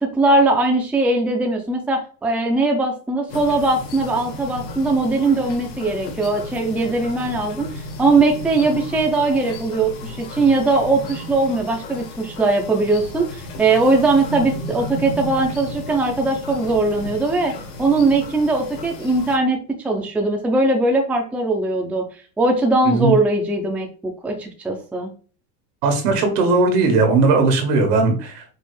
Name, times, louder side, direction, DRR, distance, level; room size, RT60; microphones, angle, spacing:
voice 1, 0.0-7.7 8.0-22.1 22.4-23.9 24.2-25.1, right 2 dB, 5° right, 2 dB, 0.5 m, -20 dB
sound 1, 3.3-19.4, left 2 dB, 70° left, 2.0 m, -34 dB
voice 2, 22.8-23.1 25.8-28.4, right 3 dB, 80° right, 4 dB, 1.7 m, -18 dB
5.4 x 2.5 x 3.3 m, 0.39 s
supercardioid pair, 135°, 47 cm